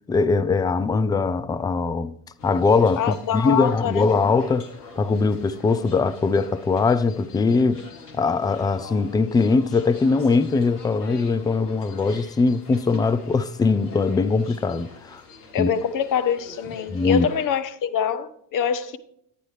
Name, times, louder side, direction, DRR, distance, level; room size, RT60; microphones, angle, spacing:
voice 1, 0.1-2.1 2.4-4.7 5.0-7.8 8.1-15.2 15.6-15.7 16.9-17.3, left 4 dB, 10° left, 0.3 m, -21 dB
sound 1, 2.4-17.5, left 3 dB, 85° left, 1.5 m, -45 dB
voice 2, 3.0-4.1 15.5-19.0, left 8 dB, 45° left, 0.9 m, -25 dB
10.0 x 9.6 x 3.2 m
hypercardioid pair, 60°, 46 cm